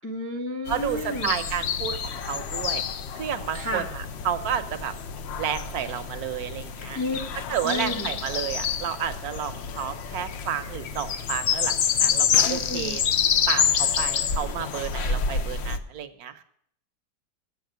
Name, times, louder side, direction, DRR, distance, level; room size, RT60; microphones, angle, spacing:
voice 1, 0.0-1.3 3.5-3.9 6.9-7.2 7.6-8.1 12.4-13.0, left 1 dB, 15° left, 3 dB, 0.4 m, -31 dB
sound 1, 0.7-15.8, left 7 dB, 80° left, 0.5 m, -28 dB
voice 2, 0.7-2.8 3.1-4.9 5.4-7.0 7.5-13.0 13.5-16.4, right 9 dB, 65° right, 9 dB, 1.1 m, -31 dB
8.3 x 7.3 x 7.9 m, 0.67 s
omnidirectional pair, 1.9 m